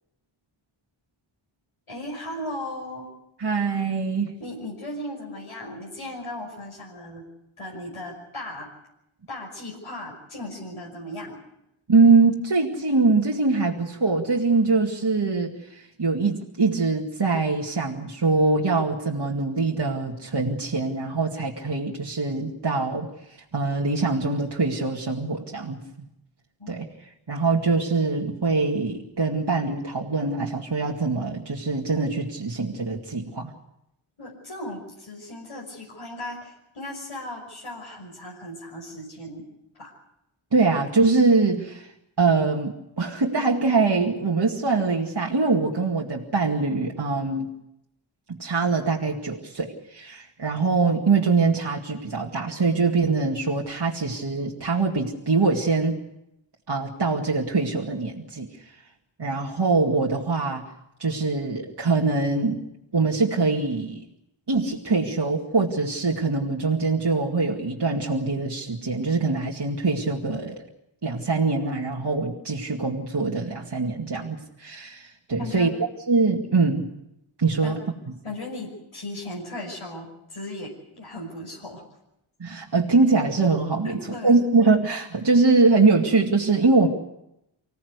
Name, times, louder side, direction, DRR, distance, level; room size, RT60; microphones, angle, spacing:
voice 1, 1.9-3.1 4.4-7.3 7.6-8.7 9.3-11.4 26.6-26.7 34.2-39.4 39.8-40.0 75.4-75.7 77.6-77.8 78.2-81.8 83.8-84.4, left 1 dB, 80° left, -3 dB, 5.9 m, -36 dB
voice 2, 3.4-4.3 11.9-23.1 23.5-25.8 26.7-26.9 27.3-33.5 40.5-41.9 42.2-47.5 48.3-56.0 56.7-58.5 59.2-60.6 61.0-62.6 62.9-64.1 64.5-70.6 71.0-75.7 76.1-76.9 77.4-77.8 82.4-84.0 84.2-86.9, right 3 dB, 50° right, -1 dB, 2.3 m, -23 dB
25.0 x 17.0 x 8.2 m, 0.84 s
wide cardioid pair, 70°, 50 cm